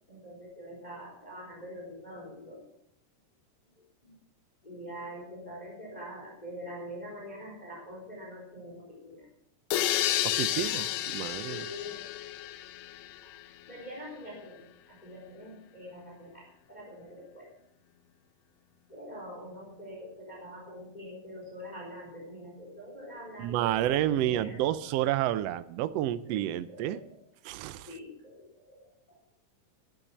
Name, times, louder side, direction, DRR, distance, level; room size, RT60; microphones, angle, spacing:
voice 1, 0.1-2.6 4.0-4.1 4.6-9.3 10.5-10.9 11.5-12.1 13.7-17.5 18.9-24.7 26.3-26.4 26.7-27.0 27.9-29.2, equal, 10° left, -3 dB, 3.9 m, -44 dB
sound 1, 9.7-13.5, left 13 dB, 90° left, 2.4 m, -31 dB
voice 2, 10.2-10.9 11.1-11.7 23.4-27.0 27.4-27.9, right 13 dB, 85° right, 13 dB, 1.4 m, -30 dB
12.0 x 11.5 x 7.3 m, 0.74 s
omnidirectional pair, 3.7 m